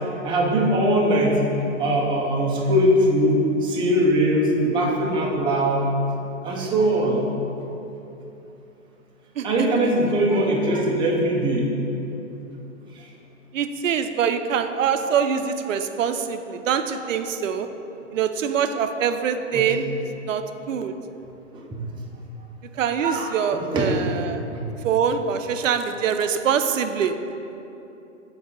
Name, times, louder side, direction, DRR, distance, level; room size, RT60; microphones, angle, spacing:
voice 1, 0.2-1.4 1.8-5.9 6.4-7.2 9.4-11.7 12.9-13.1 19.5-19.7 21.5-21.8 23.0-24.1 24.5-24.6, right 1 dB, 15° right, -2 dB, 0.6 m, -21 dB
voice 2, 9.4-9.7 13.5-17.7 18.1-20.9 22.8-24.4 24.8-27.1, right 7 dB, 90° right, 8 dB, 0.5 m, -24 dB
6.9 x 4.0 x 3.7 m, 2.9 s
hypercardioid pair, 130°, 37 cm